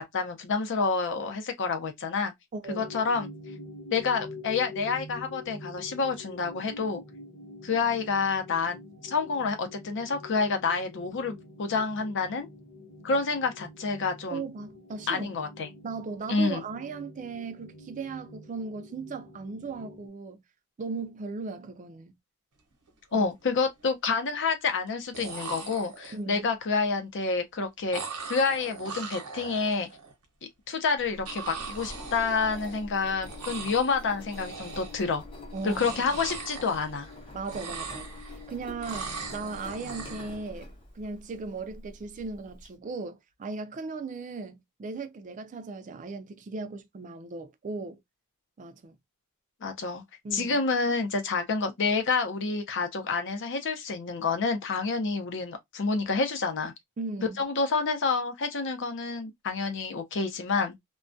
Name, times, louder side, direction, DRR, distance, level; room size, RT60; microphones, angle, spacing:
voice 1, 0.0-2.3 2.8-3.3 3.9-7.0 7.6-12.5 13.0-14.4 15.1-15.7 16.3-16.6 23.1-28.0 28.3-29.9 30.7-35.2 35.6-37.1 49.6-50.0 50.3-56.7 57.4-60.8, left 4 dB, 55° left, 0.6 m, -28 dB
voice 2, 2.5-2.9 14.3-15.4 15.8-20.4 20.8-22.1 23.1-23.3 26.1-26.5 35.5-36.1 37.3-48.0 48.6-49.0 50.2-50.6 57.0-57.4, right 4 dB, 35° right, 0.3 m, -37 dB
sound 1, 2.6-20.1, left 2 dB, 90° left, 1.0 m, -46 dB
sound 2, 22.7-22.9 23.2-23.8 24.9-25.0 25.1-26.3 27.9-30.1 31.2-33.0 33.2-34.0 34.3-35.1 35.5-37.2 37.4-38.4 38.8-40.4, right 5 dB, 80° right, 0.7 m, -40 dB
Engine, 31.0-42.7, left 2 dB, 25° left, 0.8 m, -45 dB
2.3 x 2.1 x 2.5 m
head